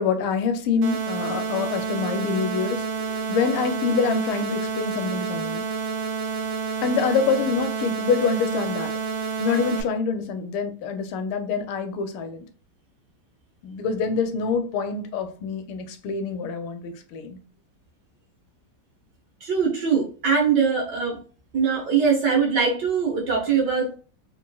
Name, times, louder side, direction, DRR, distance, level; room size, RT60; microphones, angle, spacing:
voice 1, 0.0-5.7 6.8-8.9 9.4-12.4 13.6-17.4, left 5 dB, 85° left, 1.5 m, -26 dB
sound 1, 0.8-9.8, right 6 dB, 80° right, 1.7 m, -29 dB
voice 2, 19.4-21.2 21.5-24.0, right 6 dB, 60° right, 1.5 m, -22 dB
3.9 x 3.0 x 2.2 m
omnidirectional pair, 2.4 m